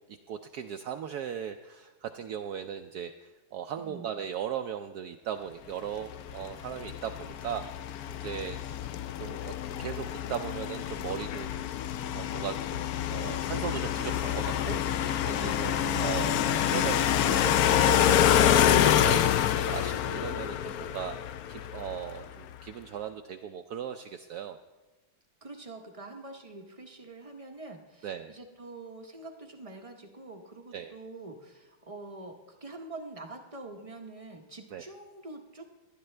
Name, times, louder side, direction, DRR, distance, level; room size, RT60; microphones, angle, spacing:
voice 1, 0.3-8.6 9.2-11.7 12.1-24.6 28.0-28.3 30.7-30.9 34.7-34.8, right 8 dB, 75° right, 6 dB, 0.9 m, -38 dB
sound 1, 6.1-22.3, left 10 dB, 75° left, 0.8 m, -27 dB
voice 2, 15.6-16.2 25.4-35.6, right 2 dB, 40° right, 3 dB, 0.5 m, -45 dB
18.5 x 11.0 x 3.3 m, 1.2 s
omnidirectional pair, 2.1 m